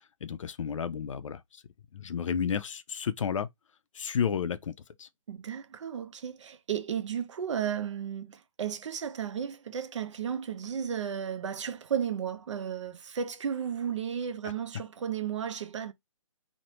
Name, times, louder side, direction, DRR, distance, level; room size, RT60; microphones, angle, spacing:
voice 1, 0.0-1.6 1.9-3.5 3.9-4.7 5.0-5.1, left 7 dB, 70° left, 0.5 m, -32 dB
voice 2, 5.3-15.9, right 8 dB, 60° right, 0.6 m, -34 dB
3.1 x 2.1 x 2.8 m
hypercardioid pair, 150°, 17 cm